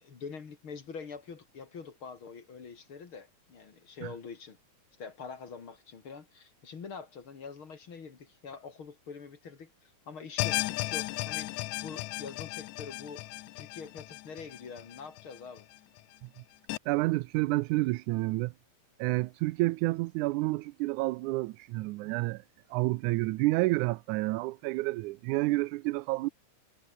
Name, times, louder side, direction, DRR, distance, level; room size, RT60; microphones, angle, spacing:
voice 1, 0.0-4.6 5.0-15.7, left 5 dB, 45° left, 3.0 m, -45 dB
sound 1, 10.4-15.6 16.0-16.1 16.7-16.8, left 19 dB, 80° left, 2.0 m, -35 dB
voice 2, 16.9-18.5 19.0-22.4 22.7-26.3, right 20 dB, 90° right, 2.1 m, -29 dB
omnidirectional pair, 3.4 m